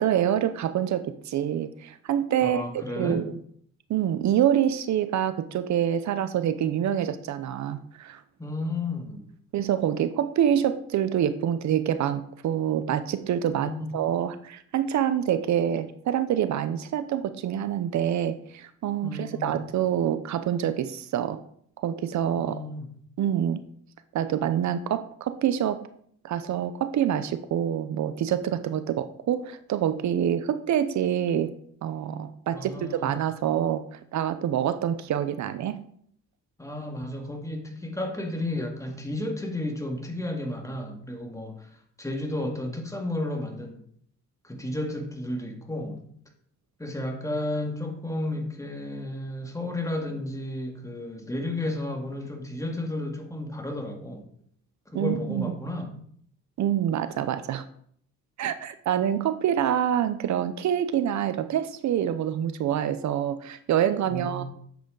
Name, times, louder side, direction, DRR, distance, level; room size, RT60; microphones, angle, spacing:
voice 1, 0.0-3.3 3.9-8.2 9.5-21.4 21.8-22.6 23.2-23.6 24.1-25.8 26.2-31.5 31.8-35.8 54.9-55.5 56.6-57.6 58.4-64.4, right 10 dB, 65° right, 12 dB, 0.7 m, -26 dB
voice 2, 2.4-3.2 8.4-9.3 13.5-13.9 19.0-19.6 22.3-22.9 32.5-33.1 36.6-41.7 42.0-43.8 44.4-46.0 46.8-54.3 54.9-56.0 64.1-64.4, left 1 dB, 10° left, 2 dB, 2.1 m, -32 dB
10.0 x 7.8 x 3.9 m, 0.64 s
cardioid pair, 90°, 30 cm